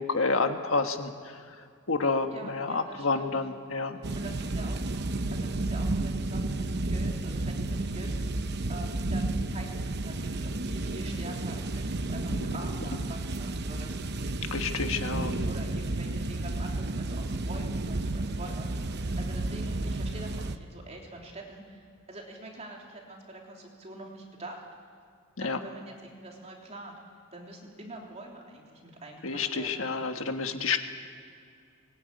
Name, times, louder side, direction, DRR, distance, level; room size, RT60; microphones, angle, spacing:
voice 1, 0.0-1.4 1.9-4.0 14.5-15.4 25.4-25.6 29.2-30.8, left 4 dB, 70° left, 6 dB, 1.6 m, -29 dB
voice 2, 2.3-3.4 4.1-14.0 15.4-18.7 19.2-24.7 25.4-27.0 27.3-29.8, right 2 dB, 30° right, -1 dB, 3.3 m, -45 dB
sound 1, 4.0-20.6, right 2 dB, 55° right, 0.9 m, -32 dB
24.0 x 21.0 x 9.4 m, 2.4 s
head